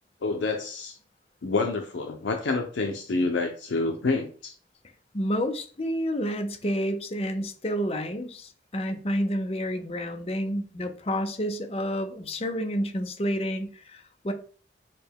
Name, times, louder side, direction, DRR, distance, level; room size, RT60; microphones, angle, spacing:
voice 1, 0.2-1.0 1.4-4.5, left 3 dB, 80° left, 0.5 m, -28 dB
voice 2, 5.1-14.3, equal, 30° left, 0.6 m, -29 dB
6.6 x 2.2 x 3.5 m
head